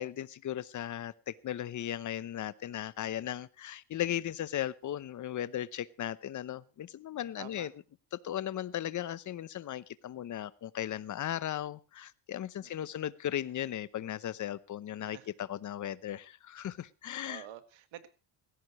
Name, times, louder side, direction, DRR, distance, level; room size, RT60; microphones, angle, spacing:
voice 1, 0.0-7.7 8.1-17.4, left 11 dB, 40° left, 18 dB, 0.8 m, -37 dB
voice 2, 7.4-7.7 12.6-12.9 15.0-15.3 17.3-18.1, right 12 dB, 70° right, 10 dB, 2.0 m, -49 dB
19.0 x 16.0 x 3.1 m, 0.32 s
cardioid pair, 130°, 48 cm